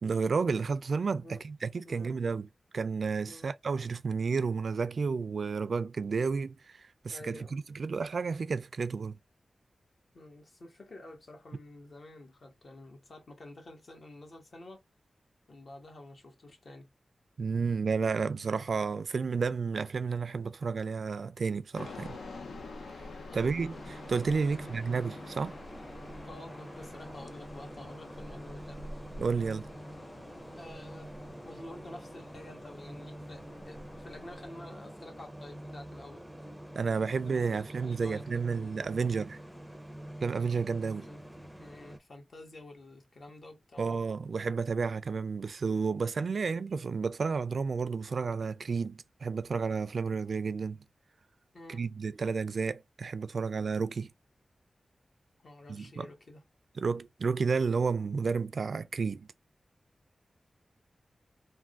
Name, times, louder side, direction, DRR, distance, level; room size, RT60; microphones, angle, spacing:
voice 1, 0.0-2.5 2.7-9.2 17.4-22.2 23.3-25.5 29.2-29.7 36.7-39.4 40.2-41.1 43.8-50.8 51.7-54.1 55.7-56.1 56.8-59.3, right 5 dB, 65° right, 0.3 m, -31 dB
voice 2, 1.8-2.2 3.3-3.5 7.1-7.5 10.1-14.8 15.5-16.9 23.3-23.5 24.5-24.7 26.2-28.8 30.6-31.1 31.4-36.2 37.2-38.2 38.5-39.0 40.9-41.2 41.6-44.0 51.5-51.8 55.4-56.4, left 1 dB, 60° left, 1.2 m, -50 dB
sound 1, 21.7-34.5, left 2 dB, 90° left, 0.7 m, -47 dB
sound 2, 23.7-42.0, right 1 dB, ahead, 0.5 m, -47 dB
3.4 x 2.2 x 2.4 m
wide cardioid pair, 95°, 0 cm